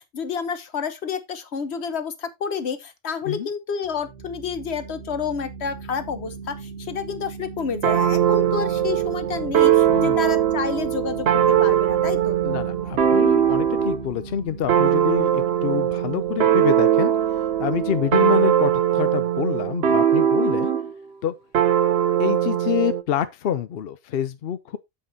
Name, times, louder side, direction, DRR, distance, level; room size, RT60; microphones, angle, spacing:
voice 1, 0.0-12.4 20.4-20.8, left 6 dB, 85° left, 1.3 m, -30 dB
sound 1, 3.8-20.1, right 5 dB, 85° right, 1.7 m, -39 dB
sound 2, 7.8-14.0 14.7-20.9 21.5-23.0, right 10 dB, 70° right, 1.0 m, -20 dB
voice 2, 9.9-10.2 12.4-17.1 17.6-20.7 21.2-21.3 22.2-24.8, left 9 dB, 65° left, 0.8 m, -27 dB
8.8 x 7.6 x 2.7 m
omnidirectional pair, 1.1 m